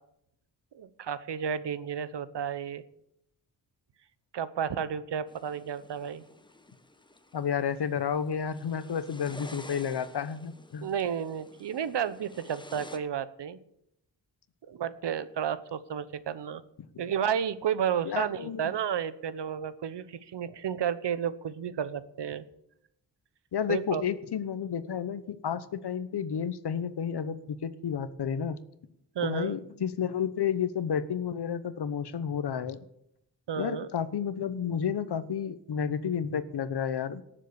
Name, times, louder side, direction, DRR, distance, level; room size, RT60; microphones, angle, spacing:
voice 1, 0.8-2.8 4.3-6.2 10.8-13.6 14.7-16.6 17.0-20.0 20.3-22.4 23.7-24.0 29.2-29.5 33.5-33.9, right 8 dB, 75° right, 15 dB, 0.9 m, -32 dB
sound 1, 5.3-13.0, left 2 dB, 10° left, 1.0 m, -51 dB
voice 2, 7.3-10.9 18.0-18.7 23.5-28.6 29.2-32.8 33.6-37.2, left 7 dB, 70° left, 13 dB, 1.0 m, -31 dB
18.5 x 7.4 x 7.0 m, 0.77 s
wide cardioid pair, 115°, 41 cm